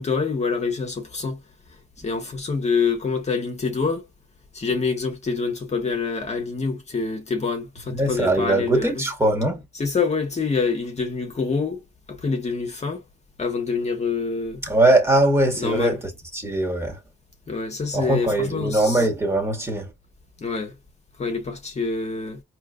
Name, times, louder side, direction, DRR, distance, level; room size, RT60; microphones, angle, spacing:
voice 1, 0.0-1.4 2.0-4.0 4.5-9.0 9.7-11.8 12.1-13.0 13.4-14.6 15.6-16.0 17.5-19.1 20.4-20.8 21.2-22.4, left 4 dB, 35° left, 1.3 m, -26 dB
voice 2, 7.9-9.7 14.6-17.0 17.9-19.9, right 1 dB, 15° right, 1.7 m, -21 dB
4.5 x 3.0 x 2.4 m
cardioid pair, 90°, 20 cm